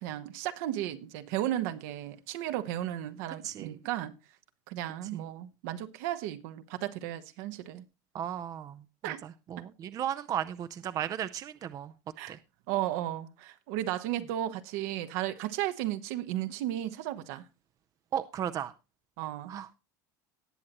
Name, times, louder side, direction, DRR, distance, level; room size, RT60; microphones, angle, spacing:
voice 1, 0.0-4.1 4.7-7.8 9.0-9.2 12.2-12.4 12.7-17.4 19.2-19.5, right 13 dB, 75° right, 1.2 m, -34 dB
voice 2, 3.4-3.7 5.1-5.2 8.1-11.9 12.3-12.4 18.1-18.7 19.5-19.7, right 10 dB, 35° right, 0.6 m, -35 dB
18.5 x 7.6 x 3.0 m
supercardioid pair, 125°, 10 cm